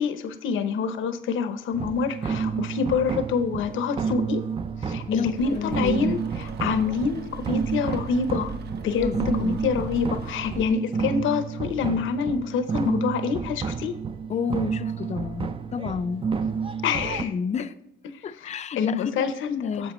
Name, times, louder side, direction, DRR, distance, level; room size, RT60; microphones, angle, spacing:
voice 1, 0.0-4.4 4.8-6.2 6.6-9.1 9.4-13.9 16.8-17.3 18.1-19.9, left 5 dB, 80° left, 0.8 m, -26 dB
sound 1, 1.7-17.2, right 5 dB, 25° right, 0.5 m, -30 dB
voice 2, 5.1-6.2 9.0-9.6 10.4-10.7 14.3-16.3 17.1-17.7 18.2-19.9, left 6 dB, 35° left, 0.5 m, -30 dB
Rain, 5.4-10.7, right 3 dB, 55° right, 0.7 m, -39 dB
9.0 x 7.0 x 3.1 m
cardioid pair, 90°, 20 cm